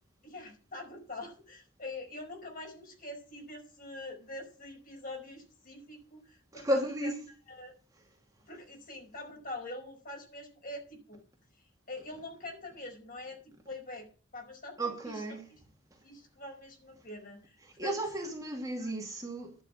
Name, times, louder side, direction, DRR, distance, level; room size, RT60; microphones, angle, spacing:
voice 1, 0.2-7.1 7.5-7.7 8.5-11.2 11.9-13.4 13.7-14.1 14.3-15.4 16.0-17.6 17.8-18.0 18.8-18.9, left 2 dB, 40° left, 5.2 m, -44 dB
voice 2, 6.5-7.2 14.8-15.5 17.6-19.5, right 1 dB, 15° right, 2.3 m, -33 dB
11.5 x 6.4 x 8.9 m
head